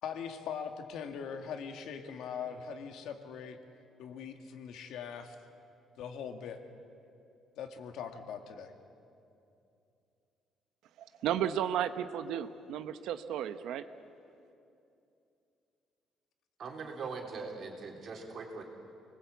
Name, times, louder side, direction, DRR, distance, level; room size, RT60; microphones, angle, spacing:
voice 1, 0.0-3.6 4.0-5.4 6.0-6.6 7.6-8.7, left 7 dB, 75° left, 6 dB, 2.0 m, -41 dB
voice 2, 11.0-13.8, right 10 dB, 80° right, 10 dB, 0.9 m, -33 dB
voice 3, 16.6-18.6, right 4 dB, 45° right, 1 dB, 3.5 m, -41 dB
28.0 x 20.0 x 8.3 m, 2.7 s
cardioid pair, 170°, 0 cm